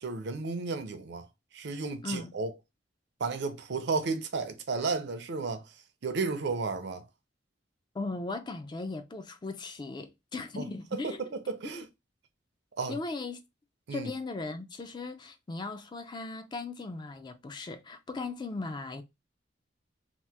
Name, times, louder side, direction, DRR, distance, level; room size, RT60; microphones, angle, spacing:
voice 1, 0.0-1.3 1.5-2.5 3.2-5.7 6.0-7.1 10.6-11.9 12.8-13.0 13.9-14.1, right 4 dB, 65° right, 0.5 m, -33 dB
voice 2, 2.0-2.4 7.9-11.3 11.7-11.9 12.9-13.4 13.9-19.0, left 3 dB, 25° left, 0.3 m, -38 dB
2.9 x 2.0 x 3.2 m
head